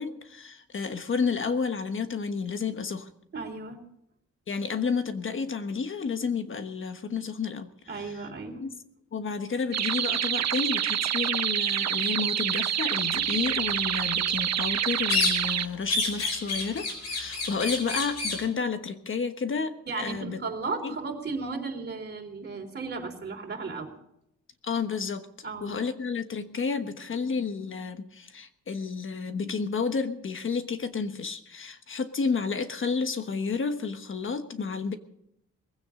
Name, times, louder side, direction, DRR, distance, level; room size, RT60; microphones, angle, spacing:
voice 1, 0.0-3.1 4.5-7.7 8.6-8.7 9.1-20.4 20.8-20.9 24.6-25.3 25.6-35.0, left 5 dB, 45° left, 9 dB, 1.3 m, -31 dB
voice 2, 3.3-3.8 7.9-8.6 19.9-23.9 25.4-25.8, right 4 dB, 35° right, 1 dB, 3.8 m, -35 dB
sound 1, 9.7-15.7, right 10 dB, 60° right, 0.8 m, -27 dB
sound 2, 15.1-15.6 15.9-18.5, left 3 dB, 60° left, 4.7 m, -29 dB
20.5 x 16.0 x 3.8 m, 0.78 s
wide cardioid pair, 130°, 30 cm